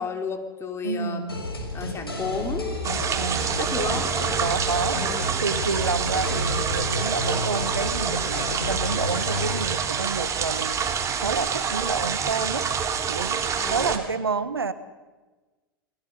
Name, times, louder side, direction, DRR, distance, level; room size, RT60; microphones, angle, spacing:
voice 1, 0.0-1.4 1.7-2.8 3.6-4.1 5.0-5.3 13.5-13.9, left 5 dB, 20° left, 5 dB, 3.4 m, -32 dB
voice 2, 0.8-1.5 3.2-4.0 4.4-5.0 5.4-12.7 13.1-14.7, right 4 dB, 80° right, 14 dB, 1.3 m, -29 dB
sound 1, 1.3-9.6, left 1 dB, 85° left, 5.9 m, -31 dB
sound 2, 2.8-14.0, right 6 dB, 25° right, 2.9 m, -27 dB
29.0 x 21.0 x 5.5 m, 1.2 s
figure-of-eight pair, 90°, 12 cm